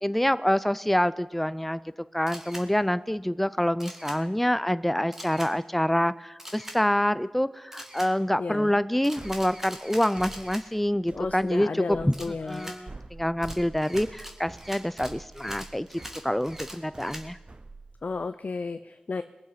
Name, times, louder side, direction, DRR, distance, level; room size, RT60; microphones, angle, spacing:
voice 1, 0.0-1.8 2.1-17.4, equal, 5° left, 15 dB, 0.5 m, -26 dB
Camera, 2.3-2.7 3.8-4.2 5.1-5.5 6.4-6.8 7.7-8.1 9.0-10.6 12.1-12.8 13.4-17.3, equal, 15° right, 2.1 m, -42 dB
voice 2, 8.4-8.7 11.1-12.8 18.0-19.2, left 4 dB, 60° left, 10 dB, 0.5 m, -33 dB
sound 1, 9.2-18.3, right 3 dB, 40° right, 0.8 m, -46 dB
21.5 x 7.4 x 5.8 m, 1.1 s
cardioid pair, 45°, 3 cm